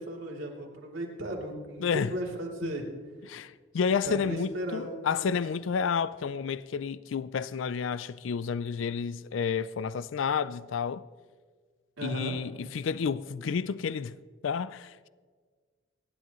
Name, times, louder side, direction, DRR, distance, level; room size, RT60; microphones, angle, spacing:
voice 1, 0.0-2.9 4.0-5.3 12.0-12.4, right 1 dB, 90° right, 3.0 m, -36 dB
voice 2, 1.8-2.1 2.6-2.7 3.3-11.0 12.0-14.2 14.4-15.1, left 6 dB, 80° left, 0.4 m, -30 dB
28.0 x 11.0 x 3.1 m
head